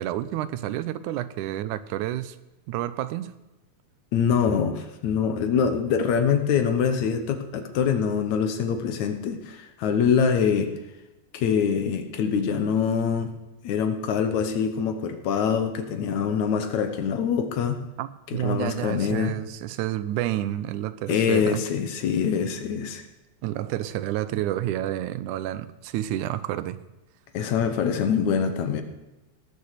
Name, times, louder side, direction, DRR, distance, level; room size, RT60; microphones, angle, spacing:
voice 1, 0.0-2.4 2.7-3.3 18.0-21.6 23.4-26.8 27.4-27.5, right 13 dB, 90° right, 14 dB, 2.1 m, -29 dB
voice 2, 4.1-10.7 11.3-13.3 13.6-17.8 18.3-19.4 21.1-23.0 27.3-28.8, left 7 dB, 75° left, 7 dB, 2.4 m, -24 dB
18.5 x 6.9 x 6.6 m, 1.0 s
omnidirectional pair, 3.5 m